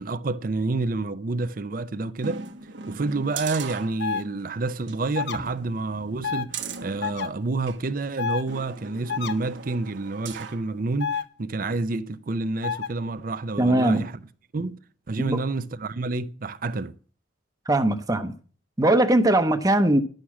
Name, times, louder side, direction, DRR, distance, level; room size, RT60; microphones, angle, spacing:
voice 1, 0.0-2.4 2.9-14.1 14.5-14.8 15.1-17.0, right 3 dB, 45° right, 0.5 m, -29 dB
sound 1, 2.2-4.4 4.8-5.0 5.3-7.8 8.5-10.7 11.1-11.2, right 5 dB, 75° right, 1.2 m, -38 dB
sound 2, 4.0-4.2 5.1-5.4 6.2-6.5 7.0-7.3 8.2-8.4 9.1-9.3 11.0-11.2 12.6-12.9, left 7 dB, 60° left, 0.8 m, -28 dB
voice 2, 13.6-14.1 15.2-15.4 17.6-18.3 18.8-20.0, right 1 dB, 20° right, 0.8 m, -20 dB
11.5 x 6.5 x 7.2 m
head